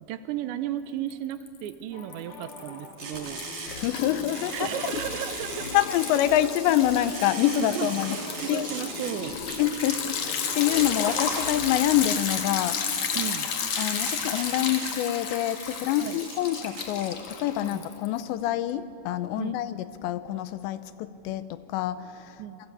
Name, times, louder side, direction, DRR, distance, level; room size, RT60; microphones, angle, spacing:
voice 1, 0.0-3.5 4.5-5.8 7.5-9.9 13.1-13.5 16.0-16.2 17.7-17.9 19.4-19.6 22.4-22.6, right 11 dB, 80° right, 11 dB, 3.1 m, -35 dB
Liquid, 1.1-1.7 2.0-18.2, left 6 dB, 50° left, 2.4 m, -33 dB
sound 1, 1.9-12.5, left 2 dB, 30° left, 2.4 m, -47 dB
sound 2, 3.0-17.1, right 5 dB, 60° right, 4.5 m, -40 dB
voice 2, 3.7-4.7 5.7-8.2 8.5-8.7 9.6-12.8 13.8-22.4, left 12 dB, 80° left, 13 dB, 3.0 m, -26 dB
28.0 x 24.0 x 8.6 m, 2.8 s
omnidirectional pair, 5.2 m